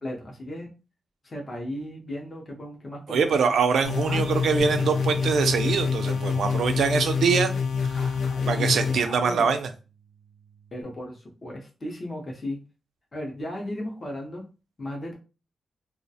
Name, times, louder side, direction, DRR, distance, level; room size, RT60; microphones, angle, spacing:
voice 1, 0.0-0.7 1.2-3.5 4.1-4.2 7.9-9.6 10.7-12.6 13.1-14.4 14.8-15.1, left 1 dB, 30° left, 0.5 m, -36 dB
voice 2, 3.1-7.6 8.5-9.7, right 5 dB, 90° right, 0.3 m, -23 dB
sound 1, 3.8-9.0, left 5 dB, 80° left, 0.4 m, -26 dB
Bass guitar, 9.4-10.8, right 6 dB, 25° right, 0.4 m, -47 dB
2.3 x 2.1 x 2.6 m
wide cardioid pair, 175°, 0 cm